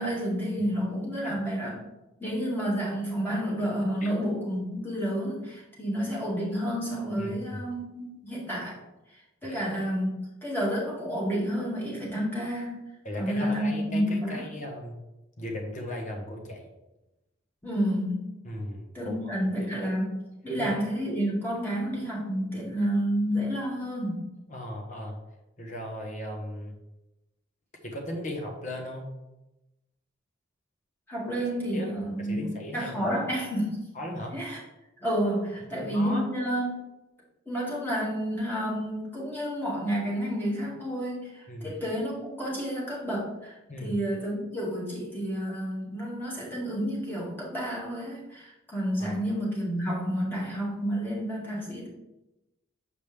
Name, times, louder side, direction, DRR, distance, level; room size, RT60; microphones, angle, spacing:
voice 1, 0.0-1.8 2.2-8.8 9.4-10.1 10.4-12.8 13.2-14.4 17.6-18.3 18.9-24.2 31.1-32.5 32.7-33.9 34.3-34.6 35.0-36.8 37.5-51.9, equal, 10° left, -6 dB, 2.1 m, -30 dB
voice 2, 13.0-15.0 15.4-16.7 18.4-19.3 19.6-19.7 20.6-20.7 24.5-25.2 25.6-26.7 27.8-29.1 31.7-31.9 32.2-33.2 33.9-34.4 35.7-36.2 41.5-41.7 43.7-43.9 49.0-49.2, left 1 dB, 40° left, 1 dB, 1.2 m, -37 dB
7.1 x 5.1 x 3.4 m, 0.98 s
head